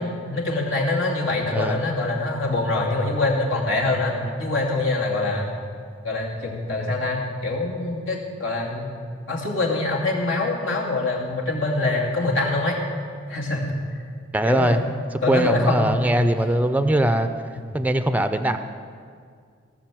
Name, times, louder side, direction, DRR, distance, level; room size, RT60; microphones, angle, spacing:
voice 1, 0.0-5.5 6.0-8.9 9.3-12.8 13.3-13.7 14.4-16.3, left 2 dB, 80° left, -3 dB, 2.5 m, -24 dB
voice 2, 1.4-1.9 4.2-4.4 14.3-14.8 15.3-17.3 17.7-18.6, right 1 dB, 10° right, 9 dB, 0.5 m, -21 dB
18.0 x 6.4 x 7.6 m, 2.1 s
head